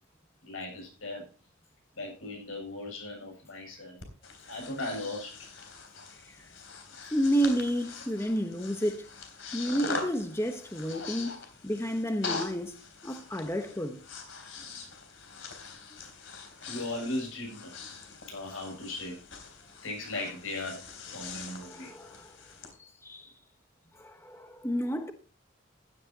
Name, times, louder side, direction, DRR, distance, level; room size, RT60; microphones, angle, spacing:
voice 1, 0.4-1.3 1.9-4.0 4.5-5.5 16.6-17.7 18.2-19.2 19.8-20.9 21.1-21.9, left 2 dB, 90° left, 7.4 m, -37 dB
Breathing, 4.0-22.7, left 4 dB, 65° left, 3.4 m, -43 dB
voice 2, 7.1-9.1 9.5-11.4 11.6-14.0 21.7-22.3 22.8-23.3 24.0-25.1, equal, 15° left, 1.0 m, -31 dB
15.5 x 11.0 x 2.9 m
head